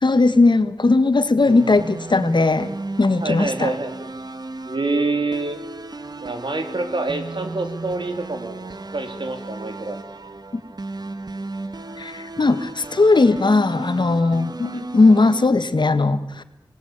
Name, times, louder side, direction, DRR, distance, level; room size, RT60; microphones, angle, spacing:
voice 1, 0.0-2.7 3.0-3.7 12.0-16.4, left 3 dB, 70° left, 11 dB, 1.7 m, -18 dB
sound 1, 1.5-15.5, right 2 dB, 55° right, 1.6 m, -34 dB
voice 2, 3.2-4.1 4.6-5.6 6.2-8.6 8.9-10.0 14.7-14.9, right 3 dB, 75° right, 6 dB, 3.5 m, -26 dB
27.0 x 20.0 x 9.0 m, 0.86 s
wide cardioid pair, 55°, 8 cm